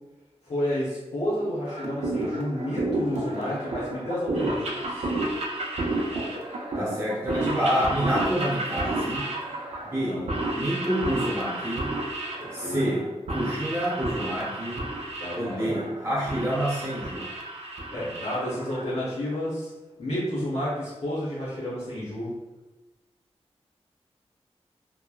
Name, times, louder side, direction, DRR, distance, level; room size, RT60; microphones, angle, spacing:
voice 1, 0.4-5.1 10.0-10.3 12.4-13.0 15.2-15.8 17.9-19.7 20.0-22.3, equal, 70° left, -9 dB, 0.9 m, -31 dB
sound 1, 1.7-19.1, right 2 dB, 80° right, 0.5 m, -31 dB
voice 2, 6.8-9.3 9.8-10.3 10.5-11.9 12.5-14.8 15.3-17.3, equal, 25° right, -8 dB, 0.7 m, -28 dB
3.1 x 2.1 x 2.3 m, 1.1 s
wide cardioid pair, 85°, 11 cm